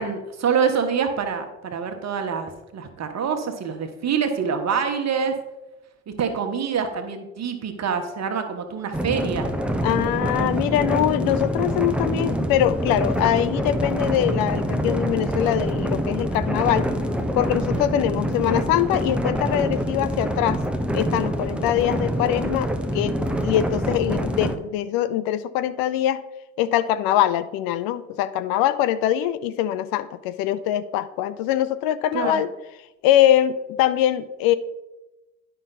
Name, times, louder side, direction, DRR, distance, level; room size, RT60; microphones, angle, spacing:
voice 1, 0.0-5.3 6.1-9.5 32.1-32.4, right 6 dB, 40° right, 6 dB, 1.3 m, -26 dB
sound 1, 8.9-24.6, equal, 5° right, 0.9 m, -25 dB
voice 2, 9.8-16.9 17.4-20.6 20.9-23.1 23.4-26.2 26.6-32.5 33.0-34.5, left 12 dB, 60° left, 14 dB, 0.6 m, -23 dB
10.0 x 5.6 x 4.0 m, 1.0 s
hypercardioid pair, 55°, 40 cm